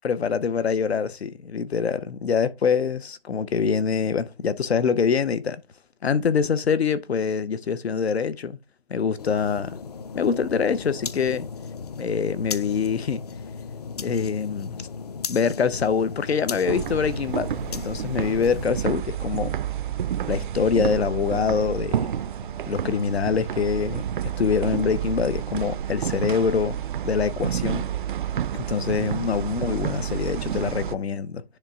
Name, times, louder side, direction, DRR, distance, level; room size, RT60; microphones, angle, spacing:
voice 1, 0.0-5.6 6.0-8.6 8.9-9.8 10.1-11.5 12.0-13.2 14.0-14.8 15.3-19.6 20.3-22.3 22.7-24.0 24.4-26.8 27.0-27.9 28.5-31.4, left 6 dB, 85° left, 0.9 m, -25 dB
sound 1, 9.2-18.7, left 6 dB, 40° left, 0.5 m, -36 dB
sound 2, 15.9-25.2, left 3 dB, 70° left, 3.8 m, -54 dB
sound 3, 16.7-30.9, right 9 dB, 55° right, 0.4 m, -29 dB
10.0 x 3.4 x 3.6 m
hypercardioid pair, 160°, 31 cm